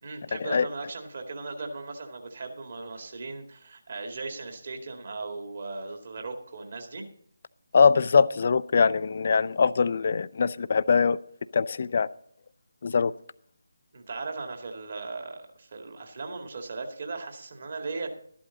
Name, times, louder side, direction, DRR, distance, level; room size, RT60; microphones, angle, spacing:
voice 1, 0.0-7.0 13.9-18.2, right 3 dB, 45° right, 2.2 m, -37 dB
voice 2, 7.7-11.2 11.5-12.1 12.8-13.1, left 5 dB, 40° left, 0.4 m, -22 dB
13.5 x 11.5 x 4.0 m
figure-of-eight pair, 155°, 0 cm